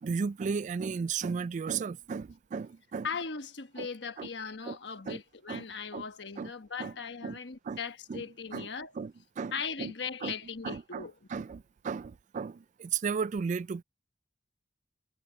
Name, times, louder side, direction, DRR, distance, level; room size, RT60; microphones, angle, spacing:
voice 1, 0.0-3.1 3.8-3.9 4.2-4.3 4.6-4.8 5.1-5.2 5.5-5.7 5.9-6.0 6.4-6.5 6.8-6.9 7.2-7.4 7.6-7.8 8.1-8.2 8.5-8.7 8.9-9.9 10.2-10.3 10.6-13.8, right 5 dB, 45° right, 0.3 m, -35 dB
voice 2, 3.0-8.9 9.5-11.1, left 6 dB, 70° left, 1.3 m, -39 dB
head